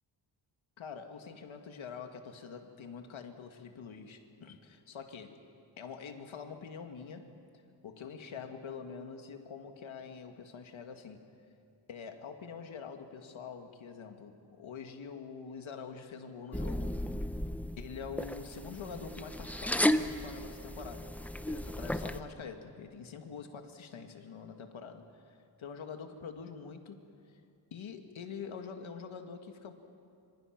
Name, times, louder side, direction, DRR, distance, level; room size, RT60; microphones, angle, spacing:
voice 1, 0.8-5.4 5.8-7.4 7.8-11.2 11.9-17.0 17.8-21.1 21.5-27.4 27.7-29.7, left 6 dB, 90° left, 5 dB, 2.0 m, -45 dB
sound 1, 16.5-22.2, left 1 dB, 5° left, 0.6 m, -34 dB
26.0 x 25.0 x 6.0 m, 2.5 s
wide cardioid pair, 150°, 46 cm